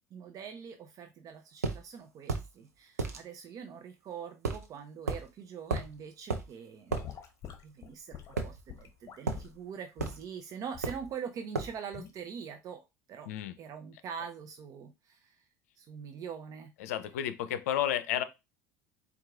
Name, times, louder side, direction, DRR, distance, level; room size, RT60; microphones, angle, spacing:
voice 1, 0.1-7.1 7.6-12.8 13.1-13.3 13.6-15.4 15.8-16.7, right 7 dB, 45° right, 0.6 m, -43 dB
sound 1, 1.6-1.8 2.3-2.5 3.0-3.2 4.4-4.7 5.1-5.2 5.7-5.9 6.3-6.5 6.9-7.1 8.4-8.9 9.3-9.5 10.0-10.2 10.8-11.1 11.5-11.8, right 4 dB, 90° right, 0.7 m, -33 dB
Gurgling / Sink (filling or washing) / Liquid, 5.7-6.0 6.9-9.6 10.0-10.2 10.7-11.0 11.9-12.2, left 9 dB, 40° left, 0.9 m, -46 dB
voice 2, 16.8-18.2, left 11 dB, 70° left, 0.5 m, -31 dB
4.6 x 2.4 x 3.5 m
hypercardioid pair, 70°, 8 cm